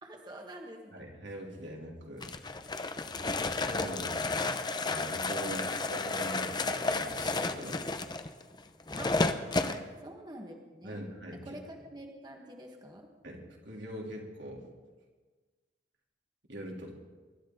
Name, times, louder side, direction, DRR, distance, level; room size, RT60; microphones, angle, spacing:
voice 1, 0.0-1.0 4.3-4.6 5.4-5.7 9.0-9.5 10.0-11.0 11.3-13.1, right 1 dB, 25° right, 1 dB, 1.5 m, -47 dB
voice 2, 0.9-2.3 3.7-4.6 4.8-5.6 5.9-7.8 9.6-9.8 10.8-11.5 13.2-14.7 16.5-16.9, equal, 85° right, -1 dB, 3.2 m, -42 dB
sound 1, 2.2-9.8, left 3 dB, 25° left, 0.7 m, -32 dB
24.0 x 13.0 x 3.9 m, 1.4 s
head